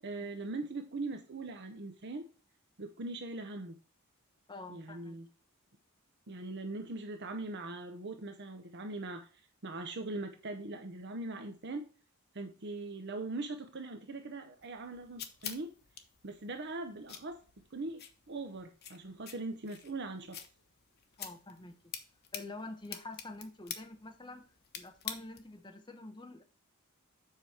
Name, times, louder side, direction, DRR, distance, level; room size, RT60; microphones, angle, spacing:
voice 1, 0.0-2.3 2.8-3.8 4.7-5.3 6.3-9.3 9.6-11.9 12.3-15.7 16.2-17.4 17.7-20.4, right 2 dB, 50° right, 6 dB, 0.8 m, -41 dB
voice 2, 4.5-5.2 21.2-21.9 22.3-24.5 24.7-26.4, left 2 dB, 20° left, 6 dB, 0.9 m, -47 dB
sound 1, 14.6-25.6, left 9 dB, 45° left, 0.9 m, -48 dB
7.6 x 5.0 x 4.2 m, 0.36 s
head